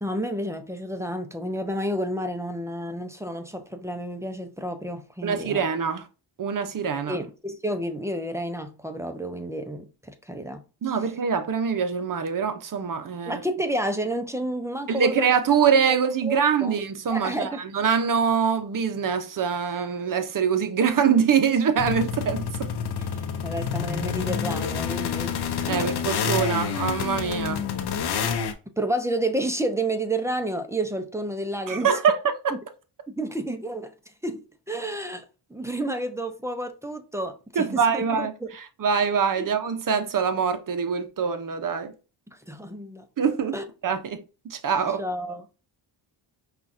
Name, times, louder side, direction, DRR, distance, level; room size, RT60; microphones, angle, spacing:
voice 1, 0.0-5.6 7.1-10.6 13.3-15.3 15.9-16.7 17.1-17.6 23.4-25.3 25.6-25.8 28.8-31.9 33.1-33.9 34.2-38.5 39.4-39.5 42.3-43.1 43.5-43.6 45.0-45.4, right 1 dB, 5° right, 0.6 m, -30 dB
voice 2, 5.2-6.0 6.4-7.2 10.8-13.4 14.9-22.7 25.7-27.6 31.7-32.2 32.4-32.5 37.6-41.9 43.2-43.5 43.8-45.0, right 6 dB, 45° right, 0.7 m, -24 dB
sound 1, 21.8-28.5, left 7 dB, 55° left, 0.7 m, -28 dB
5.5 x 2.4 x 2.6 m
cardioid pair, 75°, 48 cm